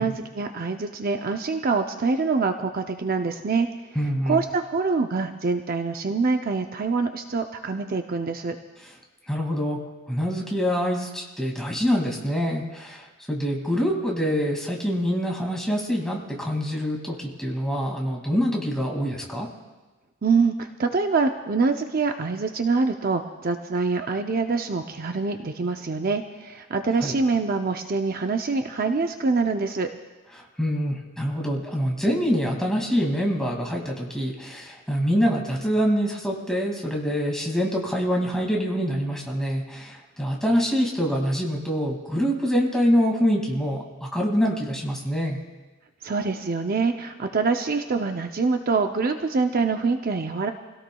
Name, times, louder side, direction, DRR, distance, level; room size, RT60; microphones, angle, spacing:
voice 1, 0.0-3.7 4.3-8.6 20.2-29.9 46.0-50.5, right 4 dB, 45° right, 6 dB, 0.6 m, -25 dB
voice 2, 4.0-4.4 9.3-9.8 10.1-19.5 27.0-27.2 30.6-45.4, equal, 5° left, -1 dB, 2.2 m, -25 dB
29.0 x 17.0 x 2.3 m, 1.2 s
head